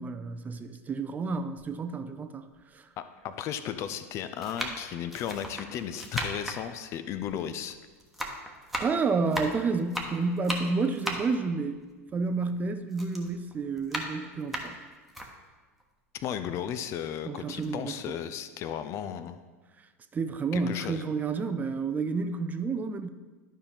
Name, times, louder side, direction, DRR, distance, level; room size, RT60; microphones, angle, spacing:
voice 1, 0.0-2.5 2.7-2.8 8.8-11.8 12.1-14.8 17.3-18.2 20.1-23.1, right 4 dB, 20° right, 9 dB, 0.5 m, -30 dB
sound 1, 1.6-1.7 2.6-2.7 3.6-3.9 4.4-7.7 8.0-12.6 12.9-15.3 15.8-15.9 16.2-17.2 17.5-17.7, equal, ahead, 1.2 m, -36 dB
voice 2, 3.0-7.8 16.1-19.4 20.5-21.0, left 9 dB, 35° left, 11 dB, 0.5 m, -35 dB
12.0 x 5.5 x 3.4 m, 1.3 s
figure-of-eight pair, 80°, 8 cm